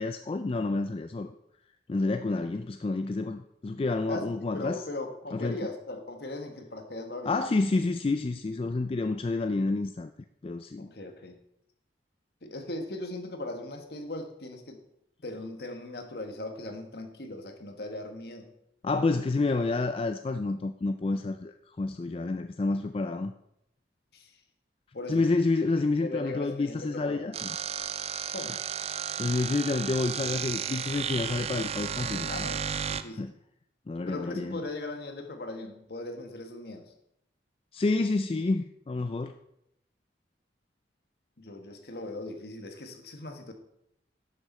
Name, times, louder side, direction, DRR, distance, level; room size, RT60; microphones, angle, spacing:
voice 1, 0.0-1.3 1.9-4.8 5.3-5.6 7.3-10.1 10.4-10.9 18.8-23.3 25.1-27.6 29.1-32.4 33.2-33.3 33.9-34.6 37.7-39.3, left 3 dB, 30° left, 8 dB, 0.3 m, -29 dB
voice 2, 4.1-7.3 10.8-11.4 12.4-14.8 15.2-18.5 24.1-24.4 24.9-25.3 25.6-25.7 26.0-27.4 28.3-28.5 32.3-32.6 32.9-33.2 34.1-36.9 41.4-43.5, left 2 dB, 60° left, 6 dB, 1.3 m, -38 dB
sound 1, 27.3-33.0, right 7 dB, 35° right, 0.4 m, -33 dB
11.0 x 6.5 x 4.2 m, 0.79 s
head